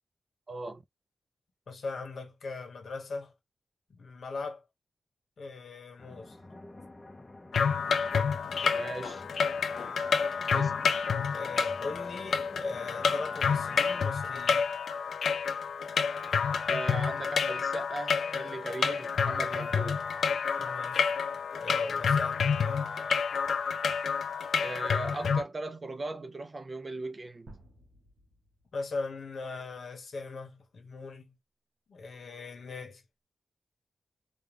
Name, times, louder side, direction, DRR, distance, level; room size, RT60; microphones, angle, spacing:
voice 1, 0.5-0.8 8.7-9.2 10.5-10.8 16.3-20.1 24.6-27.5, right 2 dB, 30° right, 0.4 m, -38 dB
voice 2, 1.7-3.3 3.9-4.6 5.4-6.4 11.3-14.7 20.6-21.2 21.6-22.5 28.7-31.4 31.9-33.0, left 4 dB, 65° left, 1.1 m, -39 dB
sound 1, 6.0-14.0, left 2 dB, 20° left, 0.6 m, -50 dB
sound 2, 7.5-25.4, left 6 dB, 85° left, 0.4 m, -29 dB
sound 3, 27.5-29.4, right 2 dB, 55° right, 1.2 m, -55 dB
3.6 x 2.2 x 3.3 m
wide cardioid pair, 170°, 0 cm